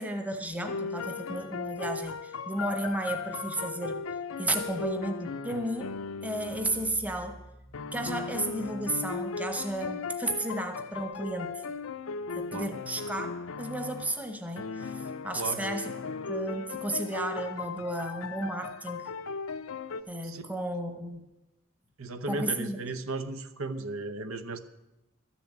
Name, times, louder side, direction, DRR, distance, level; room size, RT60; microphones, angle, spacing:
voice 1, 0.0-4.0 4.4-11.6 12.3-15.9 16.3-19.1 20.1-21.2 22.3-22.8, right 1 dB, 5° right, 6 dB, 1.0 m, -33 dB
sound 1, 0.6-7.0 7.7-14.2 14.6-20.0, left 4 dB, 75° left, 0.5 m, -37 dB
voice 2, 22.0-24.6, right 3 dB, 80° right, 10 dB, 0.9 m, -35 dB
13.0 x 7.1 x 8.6 m, 0.97 s
head